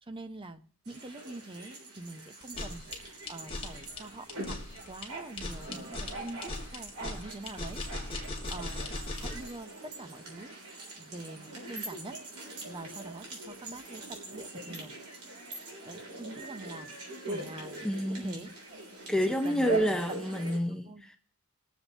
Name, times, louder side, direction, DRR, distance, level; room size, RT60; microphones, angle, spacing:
voice 1, 0.0-4.6 4.9-7.8 8.1-14.9 15.8-18.8 19.2-19.9 20.3-21.1, right 2 dB, 25° right, 0.8 m, -45 dB
sound 1, 0.8-20.6, right 2 dB, 70° right, 3.6 m, -42 dB
sound 2, 2.4-9.5, left 2 dB, 25° left, 2.1 m, -38 dB
voice 2, 17.8-18.4 19.1-21.2, equal, 5° left, 0.5 m, -29 dB
20.0 x 7.3 x 4.1 m
head